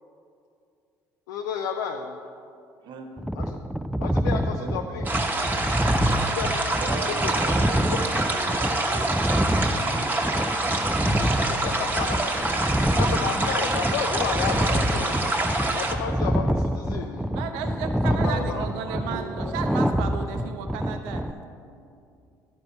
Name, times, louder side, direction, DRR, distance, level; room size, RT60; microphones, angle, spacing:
voice 1, 1.3-2.2 3.3-3.4 4.0-5.1 6.2-7.3 11.5-12.6 13.0-15.2 15.7-17.2 18.1-18.7, left 7 dB, 75° left, 4 dB, 0.4 m, -32 dB
sound 1, 3.2-21.3, equal, ahead, 0.3 m, -27 dB
sound 2, 5.0-15.9, right 2 dB, 20° right, 1.0 m, -26 dB
voice 2, 6.8-10.6 18.2-19.2 21.6-21.7, right 4 dB, 55° right, 4 dB, 1.1 m, -38 dB
voice 3, 17.3-21.4, right 6 dB, 70° right, 6 dB, 0.7 m, -34 dB
11.5 x 4.5 x 5.2 m, 2.5 s
hypercardioid pair, 55°, 9 cm